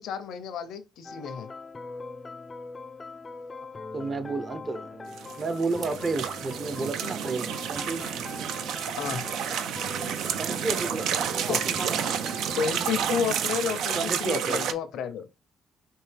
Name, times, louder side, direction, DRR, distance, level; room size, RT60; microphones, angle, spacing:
voice 1, 0.0-1.5 9.0-9.3 11.5-11.6 12.6-15.3, left 7 dB, 80° left, 0.6 m, -31 dB
sound 1, 1.0-13.3, left 3 dB, 30° left, 0.4 m, -42 dB
voice 2, 3.9-5.1 5.4-8.6 10.2-12.1 13.9-14.7, right 3 dB, 40° right, 0.7 m, -32 dB
sound 2, 5.1-14.7, right 8 dB, 85° right, 0.4 m, -30 dB
4.5 x 2.8 x 3.3 m
cardioid pair, 90°, 0 cm